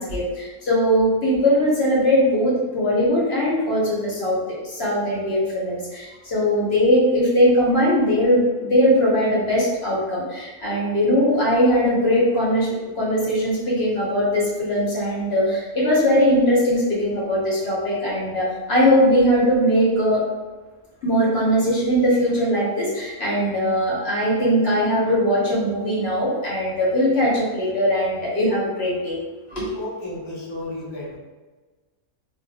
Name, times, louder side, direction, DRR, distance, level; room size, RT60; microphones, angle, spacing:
voice 1, 0.0-4.4 4.6-12.7 12.9-20.2 21.0-29.2 29.5-29.7, equal, 50° left, -5 dB, 0.9 m, -20 dB
voice 2, 29.7-31.2, left 1 dB, 30° left, -7 dB, 0.6 m, -33 dB
2.5 x 2.1 x 4.0 m, 1.3 s
omnidirectional pair, 1.5 m